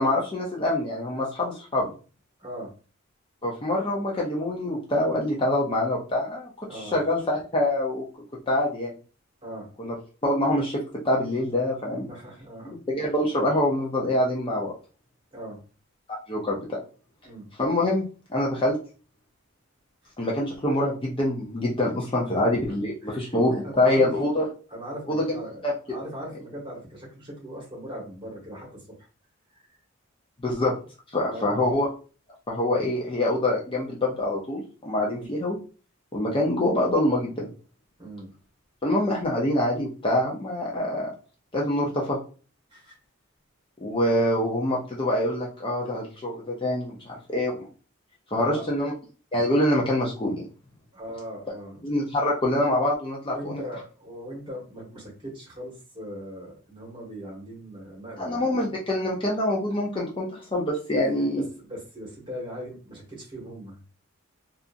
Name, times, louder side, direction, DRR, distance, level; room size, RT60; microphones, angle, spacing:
voice 1, 0.0-1.9 3.4-8.0 8.5-8.9 9.8-9.9 10.2-12.1 12.6-14.7 16.3-16.8 17.6-18.0 18.3-18.8 20.2-24.5 25.1-25.4 25.6-25.7 30.4-30.7 31.1-31.9 32.5-35.6 36.1-37.5 38.8-41.1 41.5-42.2 43.8-47.6 48.3-48.9 49.3-50.4 51.8-53.6 58.2-61.4, left 1 dB, 25° left, -3 dB, 0.5 m, -25 dB
voice 2, 2.4-2.7 6.7-7.0 9.4-9.7 12.1-12.8 15.3-15.6 17.2-17.5 20.0-20.1 21.7-21.8 22.1-22.4 23.0-23.3 23.6-24.2 24.7-25.6 25.9-29.1 29.5-29.8 31.3-31.6 35.0-35.3 38.0-38.3 42.7-43.0 48.3-48.7 50.9-51.9 53.3-58.5 60.9-63.9, equal, 25° right, -3 dB, 1.1 m, -39 dB
2.8 x 2.4 x 2.4 m, 0.36 s
head